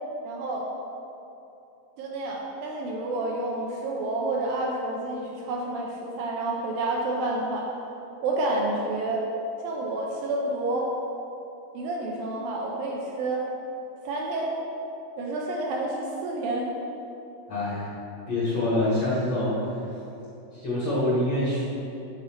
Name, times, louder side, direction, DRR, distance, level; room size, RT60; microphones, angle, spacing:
voice 1, 0.2-0.7 2.0-7.7 8.2-9.3 9.6-10.9 11.7-13.5 14.0-14.5 15.2-16.7, right 2 dB, 75° right, -1 dB, 2.3 m, -29 dB
voice 2, 17.5-17.9 18.3-19.5 20.5-21.6, left 1 dB, 60° left, -8 dB, 1.9 m, -25 dB
8.7 x 4.0 x 5.8 m, 2.8 s
omnidirectional pair, 4.6 m